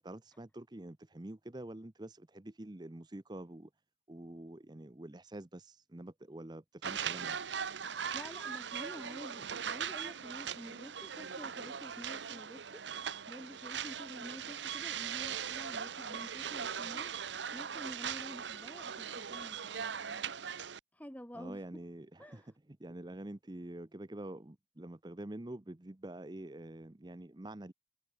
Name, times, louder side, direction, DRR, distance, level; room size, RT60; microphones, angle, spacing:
voice 1, 0.0-3.7 4.1-7.4 21.3-27.7, right 1 dB, 25° right, 0.7 m, -47 dB
sound 1, 6.8-20.8, right 7 dB, 75° right, 0.8 m, -40 dB
voice 2, 8.1-17.1 17.5-20.5 20.9-21.6 22.2-22.5, equal, 10° left, 1.5 m, -49 dB
head